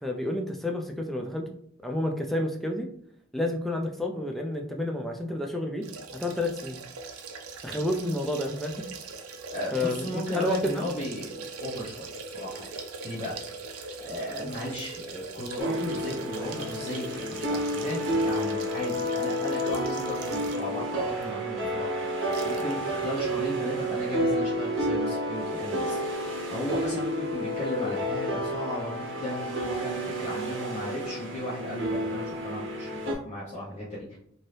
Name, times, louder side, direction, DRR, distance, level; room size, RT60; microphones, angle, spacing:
voice 1, 0.0-1.5 1.8-2.9 3.3-5.9 6.1-6.8 7.6-8.9 9.7-10.9 14.3-14.5, left 1 dB, ahead, 2 dB, 0.3 m, -30 dB
sound 1, 5.8-20.8 21.2-21.3 22.3-22.7 23.0-23.1, right 4 dB, 75° right, 0.5 m, -41 dB
voice 2, 9.5-12.7 13.0-13.4 14.0-34.2, left 1 dB, 30° left, -8 dB, 0.8 m, -35 dB
sound 2, 15.6-33.1, equal, 55° right, 0.8 m, -30 dB
2.7 x 2.6 x 3.2 m, 0.67 s
head